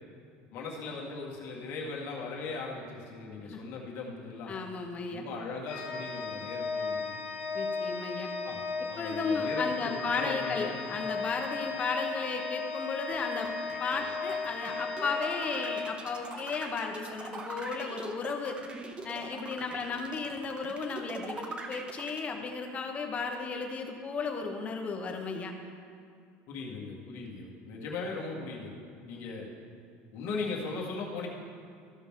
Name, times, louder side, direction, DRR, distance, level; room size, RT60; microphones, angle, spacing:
voice 1, 0.5-4.5 5.1-7.0 8.4-8.6 8.9-10.7 26.5-28.7 29.1-29.5 30.1-31.3, left 4 dB, 60° left, -3 dB, 1.9 m, -38 dB
voice 2, 4.5-5.3 7.5-8.3 9.0-13.5 13.8-18.6 19.0-25.5, left 4 dB, 25° left, 4 dB, 1.0 m, -34 dB
Organ, 5.7-16.5, left 4 dB, 85° left, 1.5 m, -36 dB
sound 1, 13.1-22.2, right 3 dB, 20° right, 0.7 m, -42 dB
14.5 x 5.9 x 3.7 m, 2.3 s
cardioid pair, 140°, 5 cm